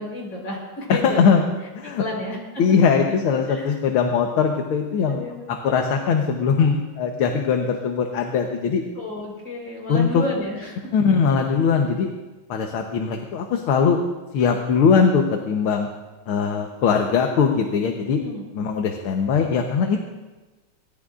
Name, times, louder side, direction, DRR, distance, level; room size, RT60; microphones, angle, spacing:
voice 1, 0.0-1.5 1.8-2.6 3.1-3.7 5.0-5.8 8.9-10.9 18.0-18.5, left 2 dB, 60° left, -2 dB, 5.0 m, -32 dB
voice 2, 0.9-1.4 1.8-2.0 2.6-5.2 5.6-8.8 9.9-10.2 10.9-12.1 12.5-14.0 14.3-15.9 16.3-18.2 18.5-20.1, left 6 dB, 80° left, 3 dB, 1.9 m, -20 dB
23.5 x 18.5 x 2.5 m, 1.2 s
omnidirectional pair, 2.3 m